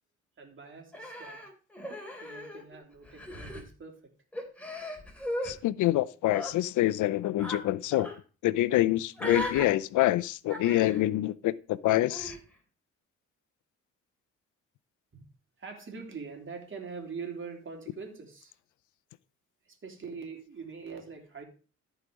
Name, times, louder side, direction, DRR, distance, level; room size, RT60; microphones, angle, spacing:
voice 1, 0.4-1.4 2.2-4.1 15.1-15.2 15.6-18.5 19.6-21.4, right 5 dB, 40° right, 3.3 m, -43 dB
Human voice, 0.9-2.8 3.0-3.6 4.3-5.5 6.2-6.5 7.4-7.6 7.9-8.2 9.2-9.6 10.5-11.0 12.1-12.4, left 1 dB, 5° left, 3.3 m, -37 dB
voice 2, 5.4-8.1 8.4-11.5 11.8-12.3, left 15 dB, 80° left, 0.6 m, -26 dB
14.0 x 5.0 x 5.2 m
cardioid pair, 90°, 30 cm